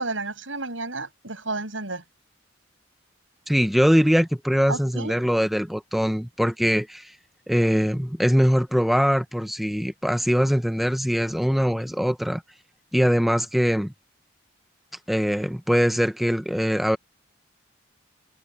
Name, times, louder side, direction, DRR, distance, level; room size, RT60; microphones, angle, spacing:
voice 1, 0.0-2.0 4.7-5.2, right 3 dB, 85° right, 7.4 m, -31 dB
voice 2, 3.5-7.1 7.5-12.4 12.9-13.9 15.1-17.0, equal, ahead, 0.7 m, -22 dB
head